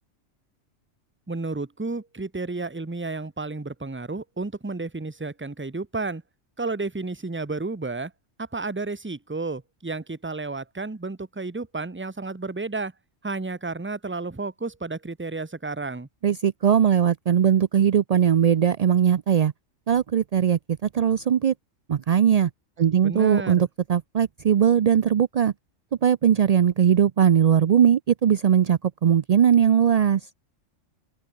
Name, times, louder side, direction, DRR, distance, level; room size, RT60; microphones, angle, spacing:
voice 1, 1.3-6.2 6.6-8.1 8.4-12.9 13.2-16.1 23.0-23.7, right 3 dB, 10° right, 0.7 m, -32 dB
voice 2, 16.2-19.5 19.9-21.5 21.9-22.5 22.8-25.5 26.0-30.2, right 8 dB, 65° right, 0.3 m, -20 dB
open air
omnidirectional pair, 1.3 m